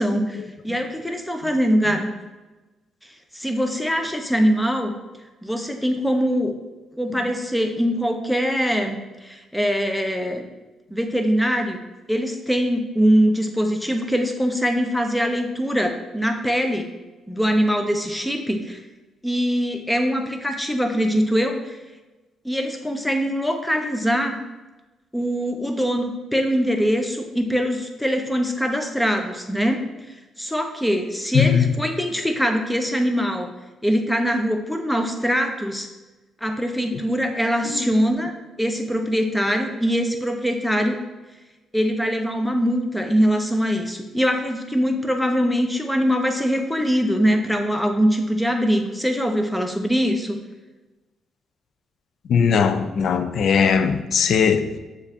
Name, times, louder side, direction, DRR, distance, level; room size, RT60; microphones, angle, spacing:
voice 1, 0.0-2.1 3.3-4.9 5.4-6.5 7.0-10.5 10.9-11.8 12.1-16.9 17.3-18.8 19.2-21.7 22.4-24.4 25.1-29.8 30.4-33.5 33.8-35.9 36.4-38.3 38.6-41.0 41.7-50.4, equal, 5° left, 0.5 m, -22 dB
voice 2, 31.3-31.8 36.9-37.0 37.6-37.9 52.3-54.8, left 6 dB, 65° left, 0.3 m, -20 dB
6.8 x 2.4 x 2.8 m
cardioid pair, 90°, 0 cm